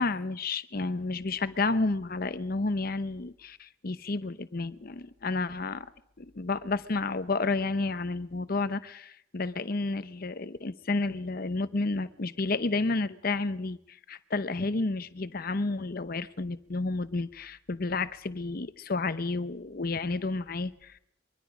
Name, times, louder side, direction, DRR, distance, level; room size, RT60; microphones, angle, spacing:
voice 1, 0.0-5.9 6.2-21.0, left 3 dB, 45° left, 13 dB, 0.8 m, -31 dB
23.0 x 23.0 x 5.1 m, 0.74 s
head